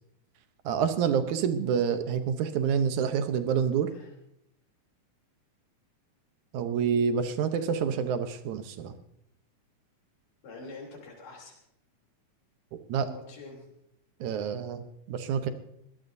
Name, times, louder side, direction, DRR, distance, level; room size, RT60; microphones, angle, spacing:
voice 1, 0.7-3.9 6.5-8.9 12.9-13.1 14.2-15.5, right 7 dB, 70° right, 9 dB, 2.3 m, -27 dB
voice 2, 7.2-7.6 10.4-11.6 13.0-13.6, left 3 dB, 75° left, -1 dB, 5.0 m, -46 dB
21.5 x 18.0 x 2.7 m, 0.78 s
omnidirectional pair, 3.7 m